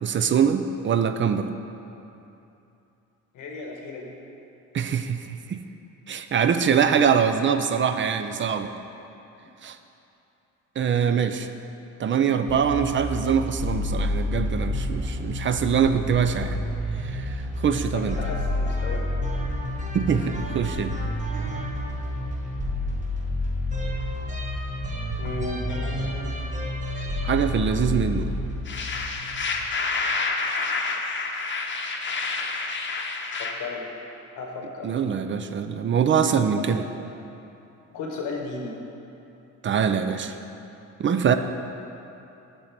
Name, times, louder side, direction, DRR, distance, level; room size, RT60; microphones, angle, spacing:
voice 1, 0.0-1.5 4.7-5.6 6.1-8.7 9.6-9.8 10.8-11.5 12.0-16.6 17.0-17.4 17.6-18.2 19.9-20.9 27.2-28.3 34.8-36.8 39.6-40.4 41.0-41.3, right 7 dB, 40° right, 9 dB, 0.4 m, -23 dB
voice 2, 3.3-4.1 17.9-19.1 25.2-26.3 33.4-33.9 34.3-35.0 36.7-37.0 37.9-38.8, left 3 dB, 85° left, 1 dB, 1.3 m, -34 dB
sound 1, 12.5-29.8, left 1 dB, 25° right, 1.0 m, -29 dB
sound 2, 28.7-33.5, left 4 dB, 40° left, 0.8 m, -28 dB
6.9 x 5.1 x 6.0 m, 2.8 s
cardioid pair, 90°, 30 cm